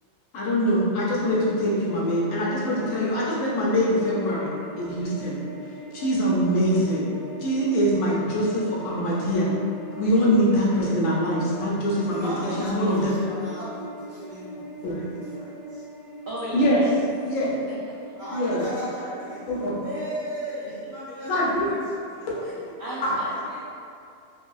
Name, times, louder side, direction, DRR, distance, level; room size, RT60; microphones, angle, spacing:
voice 1, 0.3-4.5 4.8-5.4 5.9-7.1 7.4-9.5 10.0-13.1 14.8-14.9 16.5-16.8 17.2-17.5 18.3-18.6 19.5-19.7 21.3-21.7, equal, 75° left, -6 dB, 1.0 m, -23 dB
sound 1, 1.2-20.1, equal, 30° left, 0.6 m, -40 dB
voice 2, 11.9-15.8 18.2-23.0 23.3-23.6, equal, 25° right, -13 dB, 1.1 m, -37 dB
voice 3, 16.3-17.0 17.7-18.1 19.8-19.9 20.6-20.9 22.4-22.5 22.8-23.6, right 1 dB, 70° right, -9 dB, 0.5 m, -36 dB
2.7 x 2.6 x 2.3 m, 2.4 s
omnidirectional pair, 1.4 m